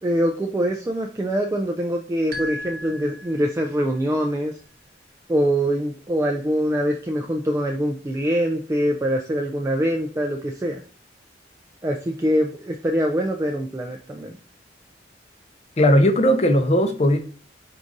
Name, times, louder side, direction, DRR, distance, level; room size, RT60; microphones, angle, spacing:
voice 1, 0.0-4.5 5.3-10.8 11.8-14.3, equal, 15° right, 0.3 m, -24 dB
sound 1, 2.3-3.9, equal, 55° right, 0.9 m, -35 dB
voice 2, 15.8-17.2, equal, 35° left, 0.6 m, -17 dB
4.7 x 2.5 x 3.8 m
head